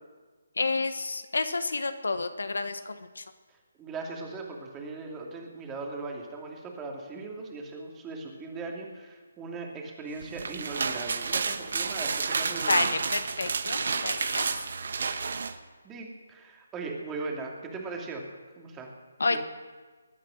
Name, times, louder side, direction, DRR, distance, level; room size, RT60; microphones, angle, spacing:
voice 1, 0.6-3.2 12.7-14.4 19.2-19.4, left 3 dB, 75° left, 10 dB, 1.3 m, -29 dB
voice 2, 3.5-13.0 15.8-18.9 19.3-19.4, right 3 dB, 15° right, 1 dB, 2.6 m, -39 dB
sound 1, 10.2-15.5, right 5 dB, 60° right, 1.2 m, -30 dB
21.5 x 9.4 x 6.4 m, 1.4 s
figure-of-eight pair, 150°, 0 cm